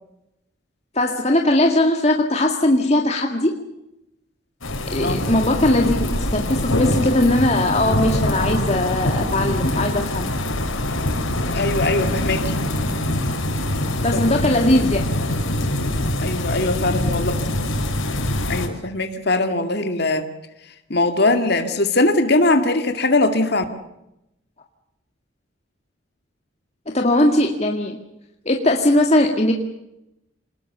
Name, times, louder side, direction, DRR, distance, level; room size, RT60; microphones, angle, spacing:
voice 1, 1.0-3.6 4.9-10.3 13.8-15.0 26.9-28.0 28.5-29.5, left 1 dB, 30° left, 2 dB, 2.0 m, -19 dB
sound 1, 4.6-18.7, left 1 dB, 85° left, 4.8 m, -24 dB
voice 2, 11.5-12.5 14.1-14.4 16.2-17.4 18.5-20.3 20.9-23.6, left 2 dB, 50° left, 6 dB, 2.3 m, -21 dB
26.5 x 20.5 x 6.8 m, 0.87 s
head